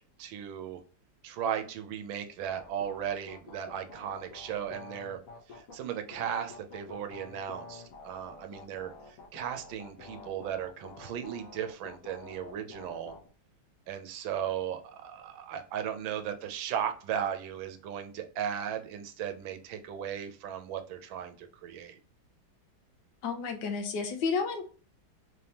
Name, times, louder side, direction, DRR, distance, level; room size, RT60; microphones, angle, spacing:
voice 1, 0.2-0.8 1.2-5.2 5.5-13.1 13.9-22.0, right 9 dB, 85° right, 8 dB, 1.5 m, -36 dB
sound 1, 2.4-5.7 6.1-13.3, left 3 dB, 55° left, 1.2 m, -48 dB
voice 2, 23.2-24.6, left 5 dB, 70° left, 5 dB, 1.4 m, -31 dB
4.1 x 3.5 x 2.8 m, 0.39 s
omnidirectional pair, 2.1 m